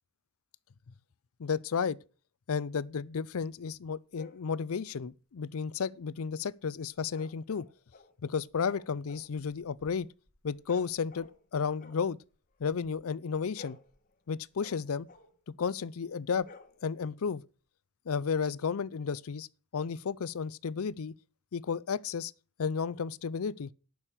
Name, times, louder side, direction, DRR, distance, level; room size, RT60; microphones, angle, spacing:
voice 1, 1.4-2.0 2.5-7.6 8.2-10.1 10.4-12.2 12.6-13.8 14.3-15.1 15.6-16.5 16.8-17.4 18.1-19.5 19.7-21.1 21.5-22.3 22.6-23.7, left 6 dB, 75° left, 0.5 m, -33 dB
sound 1, 4.1-4.5 7.1-8.2 8.5-11.5 11.8-13.0 13.3-15.4 16.3-17.1, left 4 dB, 40° left, 1.4 m, -54 dB
9.0 x 6.3 x 8.1 m
head